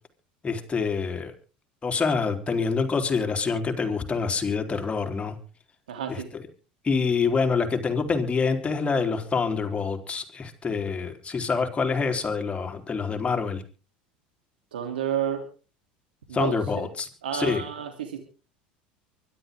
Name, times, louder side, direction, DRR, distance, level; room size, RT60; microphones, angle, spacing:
voice 1, 0.4-1.3 1.8-5.3 6.1-6.2 6.8-13.6 16.3-17.6, left 5 dB, 25° left, 5 dB, 4.0 m, -26 dB
voice 2, 5.9-6.3 14.7-15.4 16.3-16.5 17.2-18.2, right 9 dB, 85° right, 4 dB, 3.1 m, -30 dB
24.0 x 12.0 x 3.8 m, 0.37 s
hypercardioid pair, 80°, 5 cm